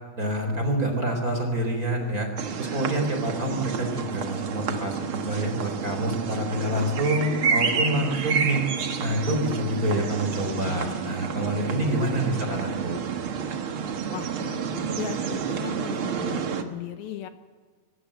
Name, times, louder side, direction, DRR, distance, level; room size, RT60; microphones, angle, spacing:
voice 1, 0.2-2.3 2.6-8.6 9.0-13.0, right 1 dB, 20° right, 4 dB, 4.0 m, -27 dB
sound 1, 2.4-16.6, right 6 dB, 70° right, 1.2 m, -29 dB
voice 2, 12.1-13.0 14.1-17.3, left 10 dB, 75° left, 7 dB, 2.8 m, -38 dB
24.0 x 19.0 x 8.8 m, 1.5 s
omnidirectional pair, 4.7 m